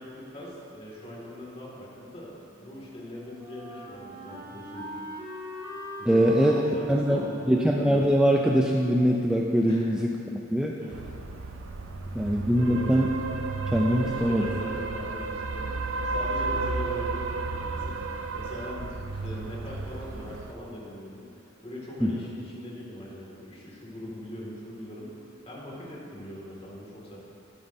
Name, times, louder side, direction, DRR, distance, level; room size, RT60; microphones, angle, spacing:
voice 1, 0.0-2.3 2.6-4.9 6.0-7.6 9.7-9.9 10.7-11.1 12.1-12.9 13.9-27.2, left 1 dB, 30° left, -5 dB, 2.1 m, -41 dB
Wind instrument woodwind instrument, 2.5-9.3, equal, 25° right, 1.7 m, -43 dB
voice 2, 6.1-6.5 6.9-10.7 12.1-13.1 13.7-14.5 22.0-22.1, equal, 5° right, -1 dB, 0.4 m, -23 dB
sound 1, 10.9-20.5, right 3 dB, 70° right, 0.6 m, -33 dB
12.5 x 8.7 x 2.7 m, 2.7 s
head